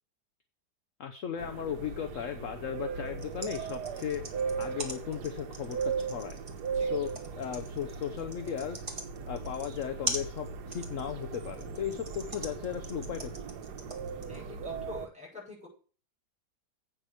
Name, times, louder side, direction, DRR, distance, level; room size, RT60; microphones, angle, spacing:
voice 1, 1.0-4.2 4.6-6.4 6.8-8.8 9.3-13.5, left 9 dB, 55° left, 7 dB, 1.1 m, -36 dB
sound 1, 1.4-15.1, right 5 dB, 75° right, 1.4 m, -38 dB
sound 2, 3.1-14.4, right 2 dB, 20° right, 1.7 m, -41 dB
voice 2, 14.3-15.7, left 4 dB, 5° right, -4 dB, 6.4 m, -46 dB
8.4 x 6.3 x 6.4 m, 0.39 s
omnidirectional pair, 1.8 m